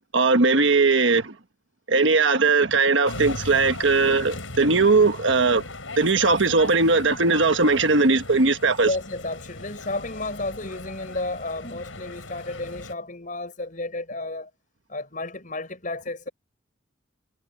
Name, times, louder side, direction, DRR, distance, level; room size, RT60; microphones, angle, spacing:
voice 1, 0.1-1.3 1.9-5.6 6.0-8.9, right 3 dB, 70° right, 1.4 m, -19 dB
sound 1, 3.0-12.9, left 2 dB, 80° left, 7.6 m, -38 dB
voice 2, 8.8-14.5 14.9-16.3, left 2 dB, 40° left, 6.4 m, -32 dB
head